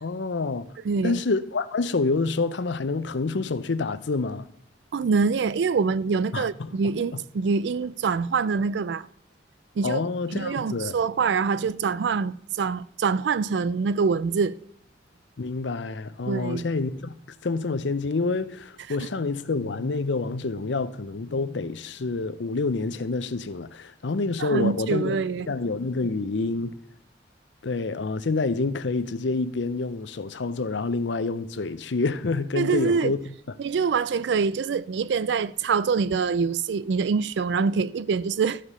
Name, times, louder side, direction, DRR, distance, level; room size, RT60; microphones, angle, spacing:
voice 1, 0.0-0.7 1.0-4.5 6.3-6.7 9.8-11.0 15.4-17.1 17.4-25.2 25.5-26.8 27.6-33.3, left 3 dB, 80° left, 0.6 m, -27 dB
voice 2, 0.8-1.2 4.9-9.1 9.8-10.0 10.3-14.6 16.3-16.6 24.4-25.5 32.6-33.1 33.6-38.6, right 5 dB, 70° right, 0.4 m, -25 dB
13.0 x 5.0 x 5.5 m
head